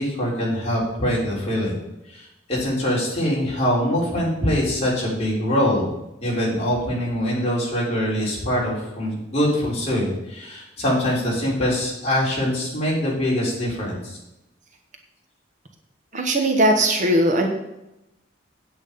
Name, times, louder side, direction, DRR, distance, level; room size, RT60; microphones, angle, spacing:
voice 1, 0.0-1.7 2.1-5.9 6.2-14.2, equal, 30° left, -4 dB, 3.8 m, -23 dB
voice 2, 16.1-17.5, right 1 dB, 40° right, 3 dB, 1.1 m, -19 dB
8.7 x 8.6 x 5.2 m, 0.90 s
head